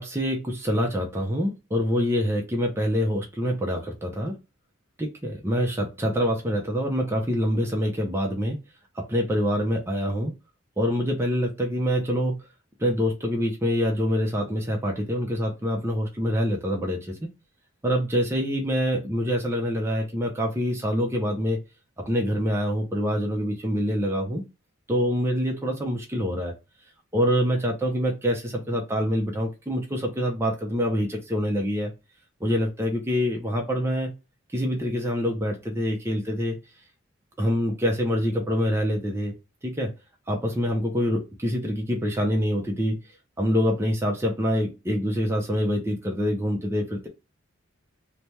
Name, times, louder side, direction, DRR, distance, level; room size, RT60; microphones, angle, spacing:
voice 1, 0.0-4.3 5.0-8.6 9.0-10.3 10.8-12.4 12.8-17.3 17.8-21.6 22.1-24.4 24.9-26.5 27.1-31.9 32.4-34.1 34.5-36.6 37.4-39.3 39.6-39.9 40.3-43.0 43.4-47.1, equal, 10° right, 0 dB, 0.5 m, -25 dB
3.3 x 2.1 x 2.8 m, 0.28 s
head